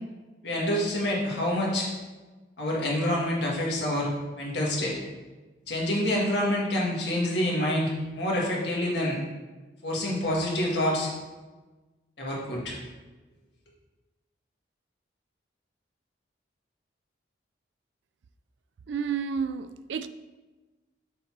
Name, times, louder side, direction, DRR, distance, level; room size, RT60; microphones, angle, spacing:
voice 1, 0.4-1.9 2.6-5.0 5.7-9.2 9.8-11.1 12.2-12.8, left 1 dB, 65° left, 1.8 m, -27 dB
voice 2, 18.9-20.1, right 6 dB, 70° right, 0.3 m, -30 dB
6.7 x 3.9 x 4.5 m
head